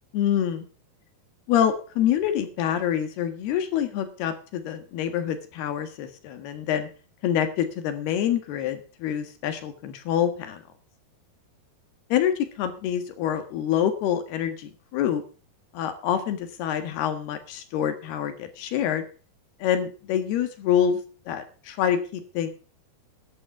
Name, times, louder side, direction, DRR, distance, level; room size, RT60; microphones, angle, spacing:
voice 1, 0.1-0.7 1.5-6.9 7.2-10.6 12.1-15.2 15.7-19.1 19.6-22.5, left 9 dB, 80° left, 9 dB, 3.6 m, -26 dB
11.5 x 11.0 x 6.0 m, 0.37 s
omnidirectional pair, 4.5 m